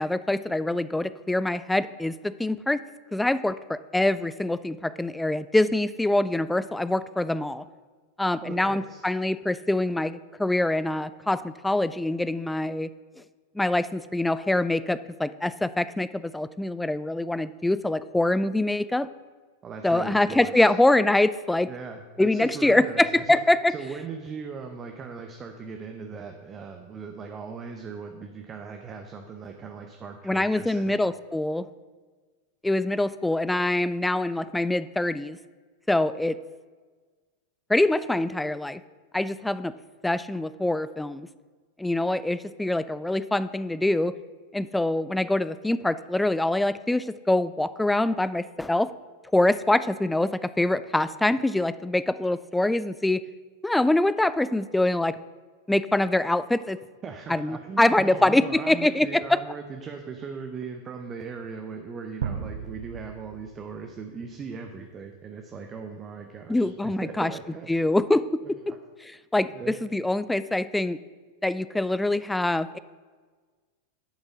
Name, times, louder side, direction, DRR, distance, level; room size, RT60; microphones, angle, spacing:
voice 1, 0.0-2.8 3.1-7.6 8.2-12.9 13.6-19.1 19.8-21.7 22.2-23.7 30.3-31.7 32.6-35.4 35.9-36.4 37.7-38.8 39.1-39.7 40.0-41.3 41.8-44.1 44.5-48.9 49.3-53.2 53.6-55.2 55.7-56.8 57.3-59.4 66.5-67.3 67.7-68.4 69.0-71.0 71.4-72.8, left 1 dB, 5° left, 15 dB, 0.3 m, -24 dB
voice 2, 8.4-9.0 19.6-20.8 21.7-23.4 23.7-31.0 57.0-67.9 68.4-68.8 69.5-69.8, right 5 dB, 25° right, 4 dB, 0.7 m, -39 dB
sound 1, 62.2-64.2, right 8 dB, 60° right, 0.5 m, -35 dB
10.0 x 5.3 x 6.0 m, 1.4 s
figure-of-eight pair, 90°, 0 cm